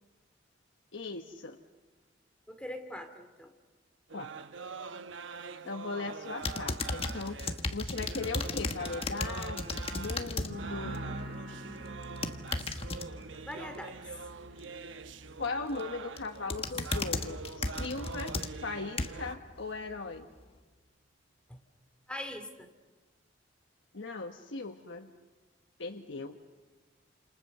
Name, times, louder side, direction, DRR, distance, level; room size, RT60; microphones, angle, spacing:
voice 1, 0.9-1.6 4.1-4.3 5.7-7.4 7.7-11.0 15.4-20.3 23.9-25.1 25.8-26.4, left 3 dB, 75° left, 4 dB, 1.3 m, -38 dB
voice 2, 2.5-3.5 13.5-14.0 21.5-21.6 22.1-22.7, left 1 dB, 5° left, 6 dB, 2.5 m, -41 dB
sound 1, 4.1-19.4, right 5 dB, 80° right, 1.0 m, -45 dB
sound 2, 6.4-10.5 10.9-11.2 12.0-13.1 15.4-15.8 16.2-19.3 19.9-20.0, left 3 dB, 30° left, 1.4 m, -35 dB
sound 3, 10.5-18.0 18.2-18.8, right 1 dB, 60° right, 7.4 m, -46 dB
29.5 x 28.0 x 6.8 m, 1.3 s
head